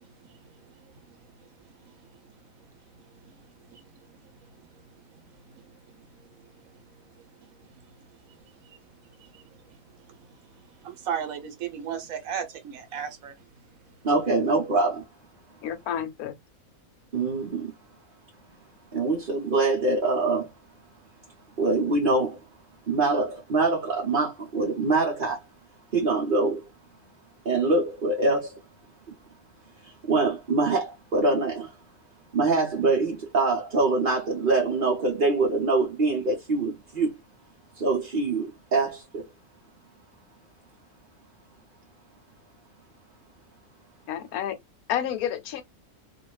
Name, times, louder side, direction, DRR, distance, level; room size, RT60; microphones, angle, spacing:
voice 1, 0.0-6.6 7.1-13.4, right 8 dB, 70° right, 1.2 m, -40 dB
voice 2, 14.0-15.0 17.1-17.7 18.9-20.5 21.6-22.4 22.9-25.4 25.9-26.7 27.4-28.6 29.8-31.7 32.3-37.1 37.7-39.3, right 3 dB, 45° right, 0.8 m, -24 dB
voice 3, 15.6-16.3 44.1-44.6 44.9-45.6, left 10 dB, 80° left, 1.1 m, -30 dB
2.7 x 2.5 x 3.1 m
omnidirectional pair, 1.6 m